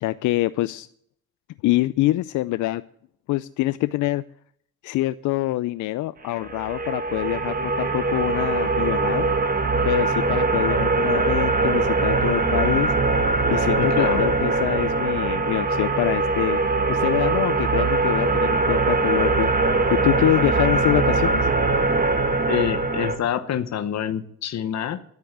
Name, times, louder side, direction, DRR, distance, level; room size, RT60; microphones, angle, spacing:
voice 1, 0.0-0.9 1.6-2.8 3.3-4.2 4.8-9.3 9.9-12.9 13.5-16.6 16.9-19.5 19.9-21.4, left 17 dB, 75° left, 14 dB, 0.5 m, -25 dB
sound 1, 6.4-23.2, right 3 dB, 30° right, 1.4 m, -22 dB
voice 2, 13.8-14.2 22.5-25.0, left 9 dB, 60° left, 12 dB, 1.0 m, -26 dB
10.5 x 8.4 x 8.1 m, 0.67 s
cardioid pair, 90°, 30 cm